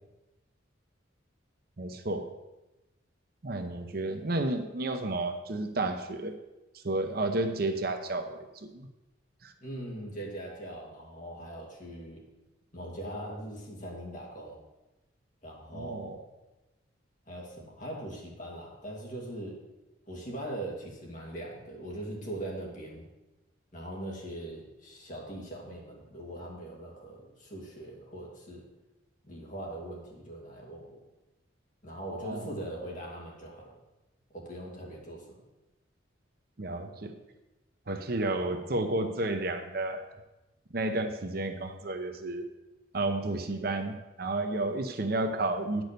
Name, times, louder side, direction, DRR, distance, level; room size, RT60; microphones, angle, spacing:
voice 1, 1.8-2.3 3.4-6.3 6.8-8.9 9.4-9.5 15.7-16.2 32.1-32.5 36.6-37.1 37.9-40.1 40.7-42.5 42.9-45.8, right 2 dB, 50° right, 7 dB, 0.8 m, -31 dB
voice 2, 9.6-12.2 12.7-14.6 15.4-16.2 17.3-19.6 20.1-23.1 23.7-28.6 29.2-31.0 31.8-33.7 34.3-35.4, right 1 dB, 40° left, -2 dB, 2.5 m, -41 dB
9.5 x 6.2 x 6.7 m, 1.0 s
head